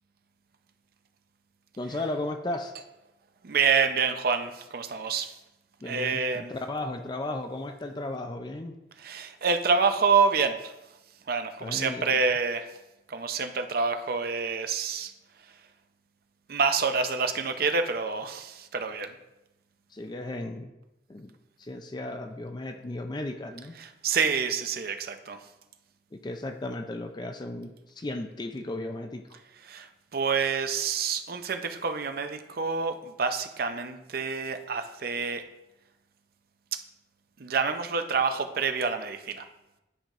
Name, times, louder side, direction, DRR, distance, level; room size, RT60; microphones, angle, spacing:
voice 1, 1.8-2.7 5.8-8.7 11.6-12.2 19.9-20.7 21.1-21.3 21.6-23.8 26.1-29.4, left 2 dB, 25° left, 6 dB, 0.4 m, -35 dB
voice 2, 3.4-5.4 5.8-6.5 9.0-10.7 11.3-12.7 13.1-15.1 15.4-15.6 16.5-19.2 23.8-25.4 29.6-35.4 36.7-36.8 37.4-39.5, right 5 dB, 55° right, 7 dB, 0.6 m, -27 dB
9.9 x 5.1 x 3.1 m, 0.94 s
head